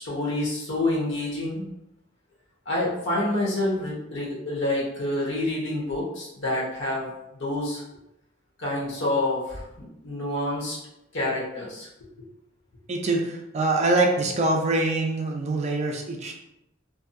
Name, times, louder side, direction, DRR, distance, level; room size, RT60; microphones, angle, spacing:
voice 1, 0.0-1.6 2.7-7.1 7.4-7.8 8.6-9.6 10.0-10.8 11.1-11.9, left 1 dB, 65° left, -4 dB, 0.9 m, -27 dB
voice 2, 12.9-16.3, right 2 dB, 35° right, 1 dB, 0.4 m, -24 dB
2.6 x 2.3 x 2.5 m, 0.85 s
head